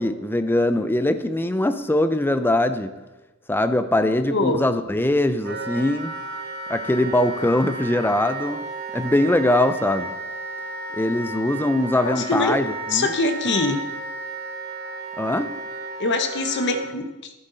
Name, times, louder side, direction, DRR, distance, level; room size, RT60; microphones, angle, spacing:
voice 1, 0.0-2.9 3.5-6.1 6.7-8.6 8.9-10.1 10.9-13.1 15.2-15.5, left 1 dB, 10° left, 10 dB, 0.5 m, -22 dB
voice 2, 4.3-4.6 12.0-12.6 12.9-13.8 16.0-17.3, left 3 dB, 55° left, 8 dB, 0.9 m, -23 dB
Wind instrument woodwind instrument, 5.4-16.9, right 2 dB, 45° right, 1.2 m, -33 dB
11.0 x 10.5 x 3.9 m, 1.1 s
head